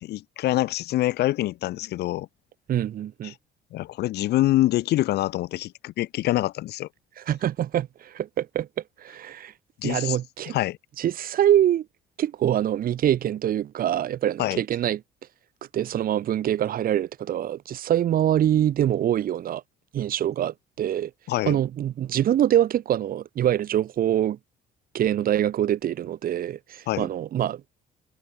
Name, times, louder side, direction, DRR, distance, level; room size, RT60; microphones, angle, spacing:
voice 1, 0.0-2.3 3.2-3.3 3.7-6.9 9.8-10.2 10.5-10.8 14.4-14.6 21.3-21.6 26.9-27.1, left 15 dB, 75° left, 3.1 m, -25 dB
voice 2, 2.7-3.3 7.2-8.7 9.0-9.5 9.8-10.6 11.0-11.9 12.2-15.0 15.7-19.6 19.9-21.1 21.5-24.4 24.9-27.6, right 11 dB, 60° right, 3.6 m, -24 dB
cardioid pair, 110°, 17 cm